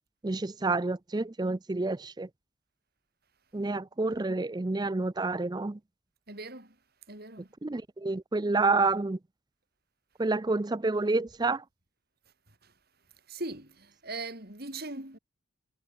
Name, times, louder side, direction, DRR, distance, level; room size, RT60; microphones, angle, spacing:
voice 1, 0.2-2.3 3.5-5.8 7.6-9.2 10.2-11.6, right 3 dB, 20° right, 0.4 m, -29 dB
voice 2, 6.3-6.8 7.1-7.5 12.6-12.7 13.3-15.2, right 2 dB, 50° right, 4.8 m, -40 dB
head